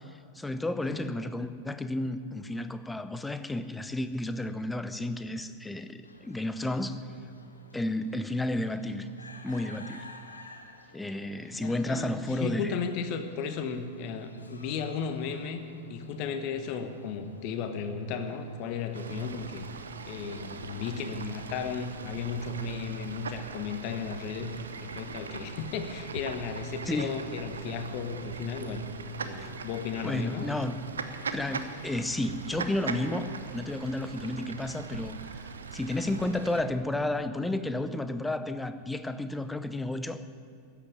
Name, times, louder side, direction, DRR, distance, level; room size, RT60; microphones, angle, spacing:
voice 1, 0.3-7.0 7.7-9.1 9.4-10.1 10.9-12.8 26.9-27.2 29.4-29.5 30.0-30.8 31.3-35.4 35.7-40.2, left 1 dB, 5° left, 11 dB, 0.7 m, -32 dB
sound 1, 6.0-22.8, left 2 dB, 80° left, 1.2 m, -54 dB
voice 2, 11.6-15.6 15.9-19.7 20.1-28.8 29.2-30.5, left 5 dB, 45° left, 8 dB, 1.2 m, -35 dB
Fowl / Bird, 18.9-36.6, right 5 dB, 70° right, 0.8 m, -40 dB
14.5 x 8.4 x 9.3 m, 2.4 s
figure-of-eight pair, 90°, 0 cm